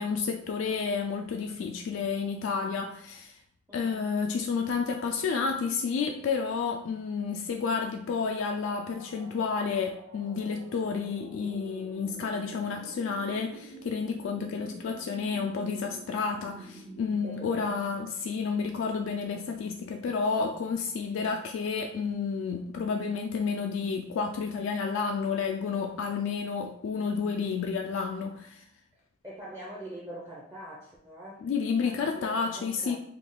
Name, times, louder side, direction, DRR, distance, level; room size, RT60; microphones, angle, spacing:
voice 1, 0.0-3.3 3.7-28.6 31.4-33.0, left 5 dB, 65° left, 3 dB, 0.3 m, -30 dB
voice 2, 3.7-4.1 17.2-18.1 29.2-31.5 31.8-33.0, right 1 dB, 15° right, -5 dB, 0.6 m, -44 dB
sound 1, 8.3-20.0, right 2 dB, 70° right, 1.1 m, -49 dB
3.5 x 2.3 x 3.8 m, 0.69 s
head